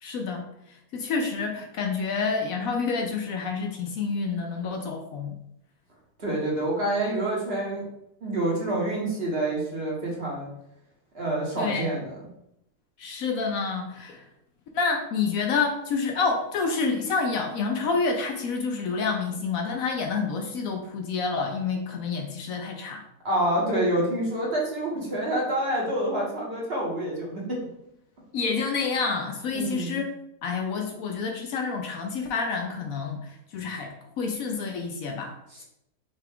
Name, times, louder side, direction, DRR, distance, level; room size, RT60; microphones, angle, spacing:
voice 1, 0.0-5.4 11.6-11.9 13.0-14.2 14.7-23.0 28.3-30.1 30.4-35.3, left 4 dB, 70° left, 3 dB, 1.0 m, -28 dB
voice 2, 6.2-7.9 8.2-10.5 11.1-12.2 23.2-27.6 29.5-30.0 35.5-35.6, right 1 dB, 45° right, -4 dB, 1.3 m, -27 dB
5.6 x 2.4 x 3.4 m, 0.79 s
omnidirectional pair, 1.6 m